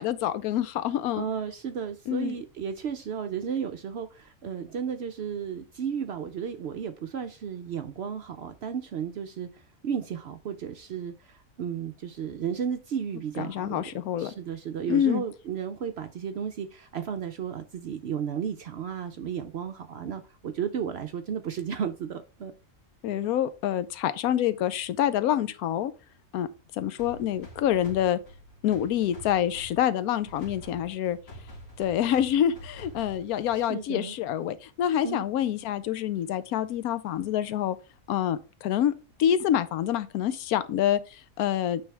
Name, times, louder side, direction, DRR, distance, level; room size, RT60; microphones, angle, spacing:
voice 1, 0.0-1.3 2.1-2.4 13.4-14.3 14.9-15.2 23.0-25.9 26.3-26.5 26.7-28.2 28.6-31.2 31.8-37.8 38.1-38.9 39.2-41.8, left 10 dB, 90° left, 1.1 m, -26 dB
voice 2, 1.2-9.5 9.8-13.8 14.2-22.5 33.7-34.1 35.0-35.2, right 7 dB, 65° right, 0.6 m, -33 dB
sound 1, 27.0-33.8, equal, 65° left, 2.2 m, -47 dB
9.0 x 3.4 x 3.3 m
omnidirectional pair, 1.5 m